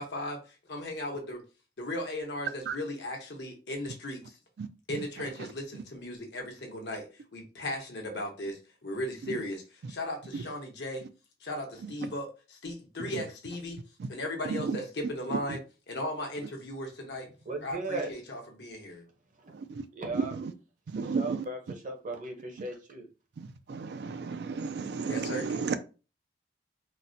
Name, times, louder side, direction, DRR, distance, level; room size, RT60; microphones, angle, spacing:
voice 1, 0.0-1.4 1.8-4.4 4.9-9.6 9.9-11.0 11.4-13.8 14.1-15.6 15.9-17.3 17.6-19.0 25.0-25.6, left 1 dB, 65° left, 1.0 m, -37 dB
voice 2, 17.5-18.1 19.9-20.4 21.0-23.1, right 2 dB, 45° right, 0.7 m, -36 dB
voice 3, 20.9-21.4 23.7-25.7, right 5 dB, 65° right, 0.4 m, -32 dB
4.0 x 2.1 x 2.6 m
head